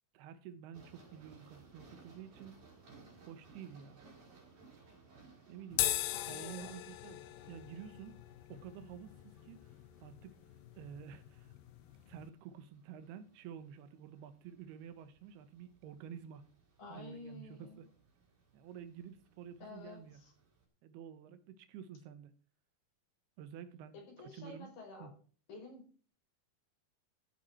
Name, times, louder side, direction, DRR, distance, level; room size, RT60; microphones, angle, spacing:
voice 1, 0.1-2.6 3.3-4.0 5.5-5.9 6.2-8.2 8.5-9.7 10.0-10.4 10.8-11.5 12.1-16.4 16.9-17.9 18.5-20.2 20.8-22.3 23.4-24.7 25.0-25.2, right 8 dB, 90° right, 12 dB, 3.0 m, -50 dB
sound 1, 0.7-20.6, right 4 dB, 55° right, 6.0 m, -63 dB
sound 2, 5.7-12.3, left 16 dB, 80° left, 2.4 m, -40 dB
voice 2, 6.1-6.8 16.8-17.8 19.6-20.3 23.9-25.1 25.5-26.1, left 3 dB, 60° left, 1 dB, 6.0 m, -50 dB
14.5 x 8.8 x 4.3 m, 0.40 s
omnidirectional pair, 4.5 m